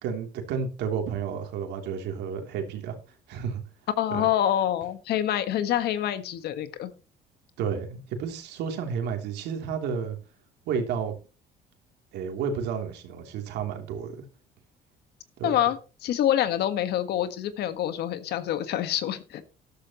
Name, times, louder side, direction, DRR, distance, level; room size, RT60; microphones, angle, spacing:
voice 1, 0.0-2.9 3.3-3.6 4.1-4.3 7.6-10.2 10.6-11.1 12.1-14.2 15.4-15.6, right 6 dB, 85° right, 4 dB, 3.1 m, -31 dB
voice 2, 4.0-6.9 15.4-19.4, left 11 dB, 75° left, 11 dB, 1.5 m, -26 dB
13.5 x 12.0 x 3.0 m, 0.32 s
cardioid pair, 110°, 17 cm